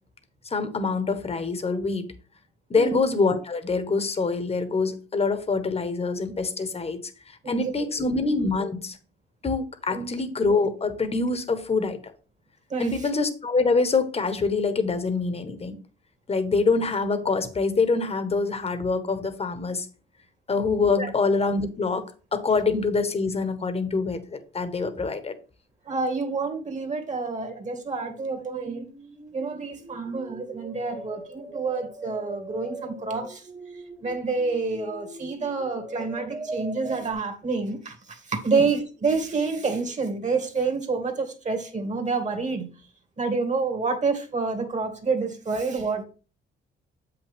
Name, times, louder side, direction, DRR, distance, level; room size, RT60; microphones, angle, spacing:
voice 1, 0.5-2.1 2.7-7.0 7.5-9.0 9.4-12.0 12.8-15.8 16.3-19.9 20.5-25.3 38.5-38.6, left 4 dB, 30° left, 1.2 m, -25 dB
voice 2, 9.9-10.2 12.7-12.9 21.0-21.1 25.9-28.9 29.3-33.5 34.0-42.7 43.2-46.0, right 4 dB, 35° right, 1.9 m, -28 dB
sound 1, 20.6-21.3 28.3-37.1, right 2 dB, 15° right, 0.9 m, -41 dB
7.5 x 5.9 x 3.5 m
cardioid pair, 90°, 20 cm